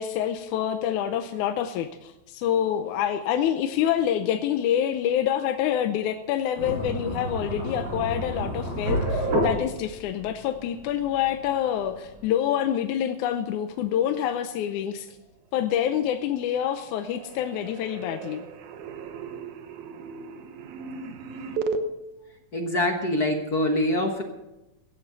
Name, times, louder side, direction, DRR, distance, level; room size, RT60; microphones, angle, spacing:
voice 1, 0.0-15.2 15.5-18.5, left 10 dB, 85° left, 7 dB, 2.2 m, -27 dB
sound 1, 6.6-12.2, right 1 dB, 40° right, 6.7 m, -30 dB
sound 2, 15.9-16.4 16.7-21.8, right 5 dB, 80° right, 2.4 m, -36 dB
voice 2, 22.5-24.2, left 1 dB, 45° left, 3 dB, 1.4 m, -24 dB
16.5 x 14.0 x 4.0 m, 0.95 s
omnidirectional pair, 3.4 m